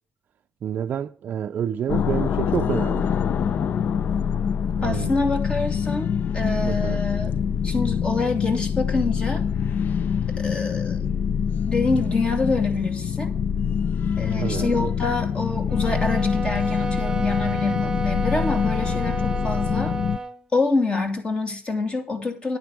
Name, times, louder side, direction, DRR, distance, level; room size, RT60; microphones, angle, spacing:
voice 1, 0.6-3.1 4.8-5.2 6.6-7.0 14.3-14.7, right 9 dB, 55° right, 0.4 m, -28 dB
sound 1, 1.9-20.2, left 7 dB, 60° left, 0.5 m, -25 dB
voice 2, 4.8-7.4 7.6-9.4 10.4-11.0 11.7-13.3 14.2-19.9 20.5-22.6, left 3 dB, 30° left, 2.6 m, -26 dB
sound 2, 15.7-20.4, right 3 dB, 15° right, 0.8 m, -32 dB
11.0 x 9.4 x 4.8 m
cardioid pair, 155°, 4 cm